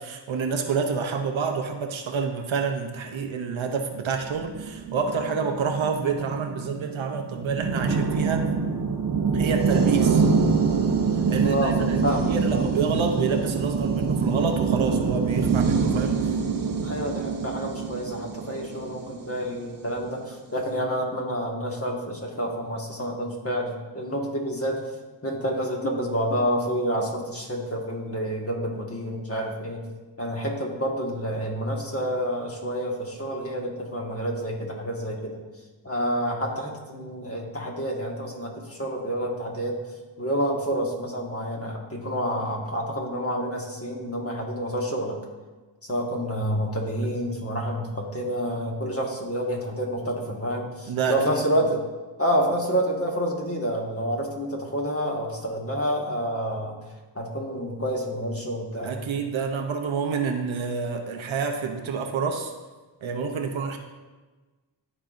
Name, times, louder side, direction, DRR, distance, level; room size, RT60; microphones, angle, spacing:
voice 1, 0.0-8.5 9.3-10.2 11.3-16.4 50.9-51.2 58.8-62.5 63.0-63.8, right 5 dB, 90° right, 5 dB, 0.8 m, -28 dB
sound 1, 4.2-19.7, right 5 dB, 45° right, 0.8 m, -25 dB
voice 2, 11.4-12.7 16.8-24.8 25.2-29.8 30.2-35.4 35.8-39.8 40.2-45.2 45.8-51.8 52.2-56.8 57.1-59.0, equal, 30° left, -1 dB, 1.6 m, -28 dB
12.5 x 4.3 x 2.6 m, 1.3 s
cardioid pair, 45°, 46 cm